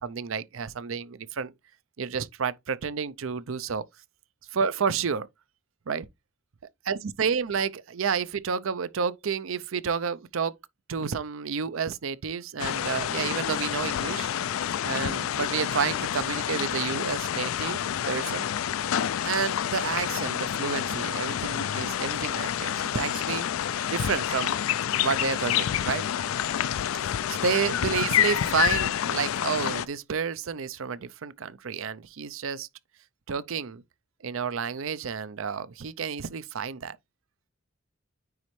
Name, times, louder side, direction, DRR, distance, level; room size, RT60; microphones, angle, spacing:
voice 1, 0.0-1.5 2.0-3.9 4.5-5.3 5.9-6.1 6.9-10.6 10.9-14.3 14.8-17.8 18.1-18.5 19.2-23.5 23.9-24.6 25.0-26.0 27.0-32.7 33.3-33.8 34.2-37.0, right 6 dB, 75° right, 0.5 m, -30 dB
sound 1, 12.6-29.9, left 10 dB, 80° left, 0.4 m, -28 dB
9.4 x 4.2 x 3.1 m
head